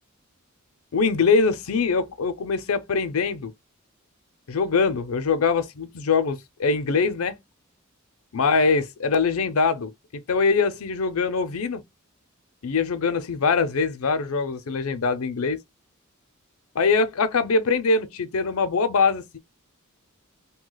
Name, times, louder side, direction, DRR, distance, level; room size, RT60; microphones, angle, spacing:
voice 1, 0.9-3.5 4.5-7.4 8.3-11.8 12.6-15.6 16.7-19.4, left 4 dB, 80° left, 0.6 m, -23 dB
2.8 x 2.2 x 3.9 m
head